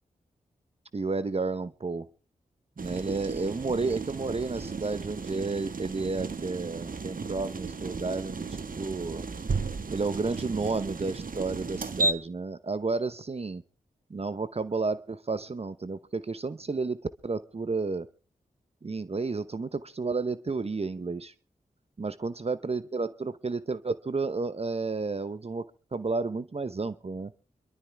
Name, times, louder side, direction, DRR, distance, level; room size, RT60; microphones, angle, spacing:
voice 1, 0.9-2.1 2.8-9.3 9.9-13.6 14.1-18.1 18.8-21.3 22.0-25.7 25.9-27.3, right 3 dB, 40° right, 14 dB, 0.9 m, -31 dB
sound 1, 2.8-12.1, right 3 dB, 60° right, 1.5 m, -34 dB
25.5 x 12.5 x 3.5 m, 0.35 s
cardioid pair, 40°, 16 cm